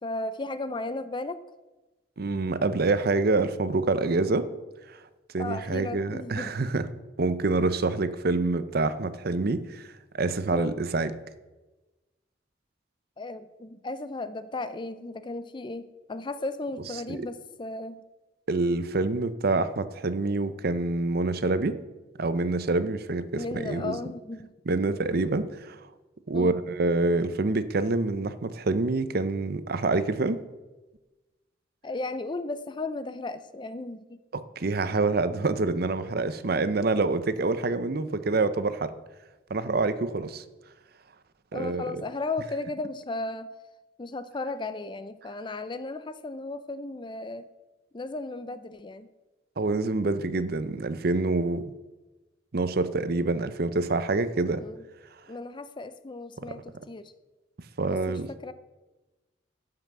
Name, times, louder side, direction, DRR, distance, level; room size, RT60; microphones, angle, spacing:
voice 1, 0.0-1.4 5.4-6.6 10.5-10.8 13.2-18.0 23.3-24.5 26.3-26.6 31.8-34.2 41.5-43.5 44.0-47.5 47.9-49.1 54.6-54.8 55.3-57.1 57.9-58.5, left 2 dB, 25° left, 13 dB, 0.4 m, -35 dB
voice 2, 2.2-4.5 5.3-6.9 7.2-9.9 10.1-11.1 17.1-17.3 18.5-21.8 22.2-24.0 24.7-25.8 26.3-30.4 34.6-38.9 39.5-40.4 41.5-42.0 49.6-51.7 52.5-54.6 56.5-56.6 57.8-58.3, right 3 dB, 50° right, 13 dB, 0.6 m, -26 dB
12.0 x 5.8 x 6.8 m, 1.1 s
head